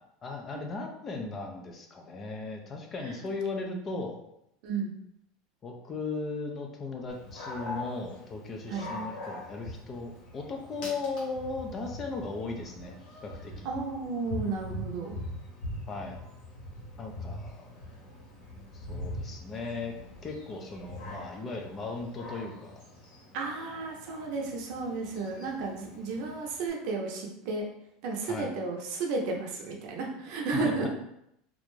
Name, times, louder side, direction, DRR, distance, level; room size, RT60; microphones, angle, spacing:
voice 1, 0.2-4.2 5.6-12.9 13.2-13.7 15.9-16.2 17.0-17.7 18.7-19.9 20.2-22.8 28.3-28.5 30.5-30.9, left 3 dB, 25° left, 2 dB, 0.4 m, -37 dB
Dog, 7.1-26.7, left 1 dB, 60° left, 1.0 m, -43 dB
voice 2, 13.6-15.2 23.3-27.6 28.0-30.9, right 3 dB, 60° right, 0 dB, 0.6 m, -33 dB
2.4 x 2.1 x 3.1 m, 0.79 s
supercardioid pair, 150°, 0 cm